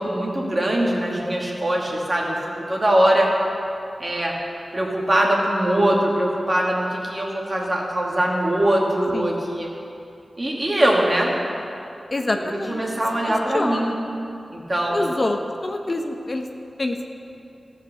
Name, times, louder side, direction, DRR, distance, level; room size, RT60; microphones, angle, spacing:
voice 1, 0.0-2.4 2.7-3.3 4.0-4.3 4.7-9.7 10.4-11.3 12.3-13.9 14.5-15.1, right 1 dB, 35° right, -2 dB, 2.3 m, -22 dB
voice 2, 12.1-12.8 13.2-14.0 14.9-16.5 16.8-17.1, left 2 dB, 45° left, 4 dB, 0.8 m, -26 dB
13.5 x 5.9 x 6.7 m, 2.7 s
cardioid pair, 50°, 0 cm